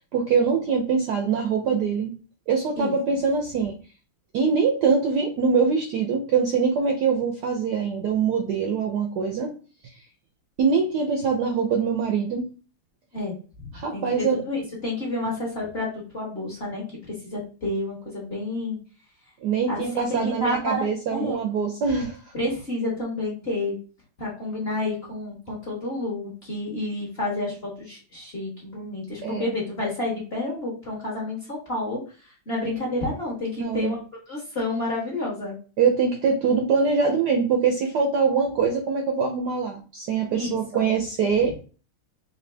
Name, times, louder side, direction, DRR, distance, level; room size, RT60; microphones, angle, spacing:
voice 1, 0.0-2.1 2.5-3.8 4.3-9.5 10.6-12.5 13.7-14.4 19.4-22.3 29.2-29.6 33.6-33.9 35.8-41.6, right 5 dB, 70° right, 4 dB, 1.0 m, -23 dB
voice 2, 13.1-16.8 17.3-18.8 19.7-21.4 22.3-23.8 24.2-34.0 34.3-35.6 40.3-40.9, left 2 dB, 35° left, -4 dB, 1.1 m, -30 dB
4.2 x 2.7 x 3.2 m, 0.37 s
omnidirectional pair, 2.3 m